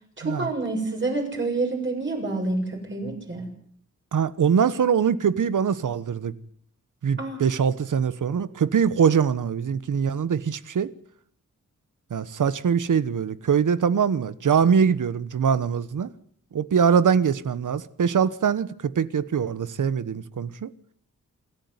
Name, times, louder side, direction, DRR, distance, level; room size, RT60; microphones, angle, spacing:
voice 1, 0.2-3.5 7.2-7.4, right 2 dB, 40° right, 7.2 m, -28 dB
voice 2, 4.1-6.3 7.0-10.9 12.1-16.1 16.5-20.7, right 7 dB, 80° right, 1.2 m, -23 dB
26.5 x 13.5 x 9.6 m
wide cardioid pair, 130°, 31 cm